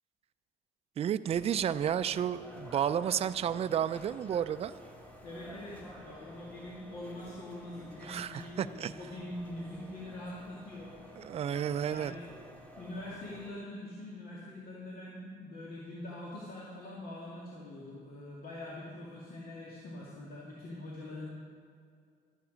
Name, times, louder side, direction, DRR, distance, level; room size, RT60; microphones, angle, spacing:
voice 1, 1.0-4.7 8.0-8.9 11.2-12.2, right 9 dB, 35° right, 12 dB, 0.4 m, -31 dB
sound 1, 1.2-13.5, equal, 10° left, 1.9 m, -51 dB
voice 2, 5.2-12.3 12.8-21.3, left 1 dB, 60° left, -5 dB, 2.2 m, -44 dB
12.5 x 9.6 x 5.1 m, 2.3 s
cardioid pair, 110°, 17 cm